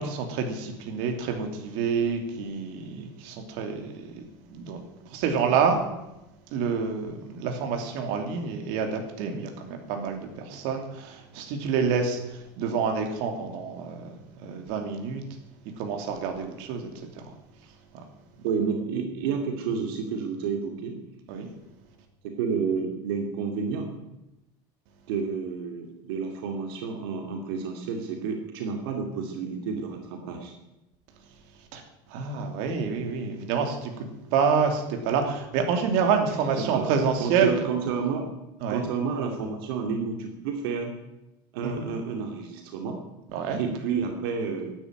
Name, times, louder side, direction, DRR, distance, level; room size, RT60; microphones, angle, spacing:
voice 1, 0.0-4.2 4.5-5.8 6.5-14.1 14.4-15.2 15.8-16.9 17.1-17.2 17.9-18.0 21.3-21.5 31.7-31.8 32.1-37.5 38.6-38.8 41.6-41.9 43.3-43.6, right 6 dB, 65° right, 4 dB, 3.0 m, -28 dB
voice 2, 18.4-21.0 21.4-21.5 22.2-23.9 25.1-30.5 36.6-36.9 37.2-38.3 38.7-40.9 41.5-43.0 43.5-44.8, right 5 dB, 80° right, 3 dB, 2.5 m, -30 dB
12.5 x 10.0 x 9.0 m, 0.94 s
cardioid pair, 155°, 12 cm